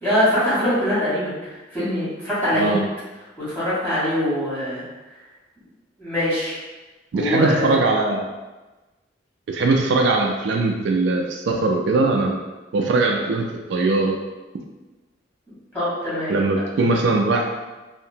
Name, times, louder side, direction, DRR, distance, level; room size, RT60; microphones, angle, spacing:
voice 1, 0.0-2.8 3.4-4.8 6.0-6.5 7.1-7.7 15.7-16.6, left 1 dB, 10° left, -12 dB, 1.4 m, -23 dB
voice 2, 7.1-8.3 9.5-12.4 12.7-14.2 16.3-17.5, right 3 dB, 65° right, 1 dB, 0.3 m, -20 dB
2.8 x 2.5 x 2.7 m, 1.2 s
head